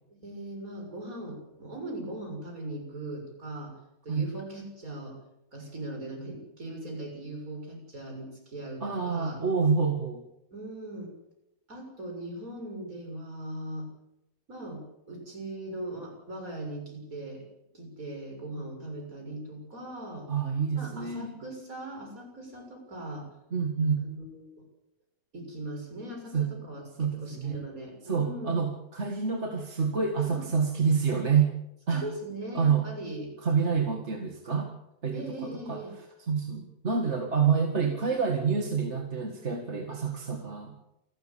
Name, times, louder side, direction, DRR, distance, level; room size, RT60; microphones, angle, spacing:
voice 1, 0.1-3.7 4.0-5.2 5.5-9.4 10.5-11.1 11.7-13.9 14.5-17.4 17.7-20.3 20.7-23.3 24.0-24.6 25.3-26.8 27.1-28.6 30.2-30.5 31.9-33.3 35.1-35.9, right 1 dB, 70° right, 2 dB, 7.4 m, -39 dB
voice 2, 8.8-10.2 20.3-21.4 23.5-24.1 26.3-26.5 27.0-27.6 28.0-31.6 31.9-32.0 32.5-32.9 33.4-34.7 35.0-35.8 36.2-40.7, right 6 dB, 50° right, 3 dB, 2.4 m, -27 dB
28.0 x 13.0 x 8.6 m, 0.86 s
omnidirectional pair, 1.6 m